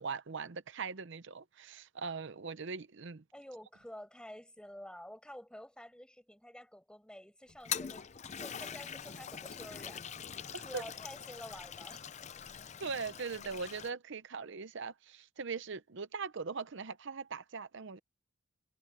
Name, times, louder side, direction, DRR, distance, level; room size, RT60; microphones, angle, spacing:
voice 1, 0.0-3.2 10.5-10.8 12.8-18.0, right 5 dB, 60° right, 0.7 m, -40 dB
voice 2, 3.3-8.0 8.4-10.2 10.6-12.3, equal, 5° left, 5.6 m, -50 dB
Toilet flush, 7.5-13.9, left 8 dB, 35° left, 0.5 m, -43 dB
head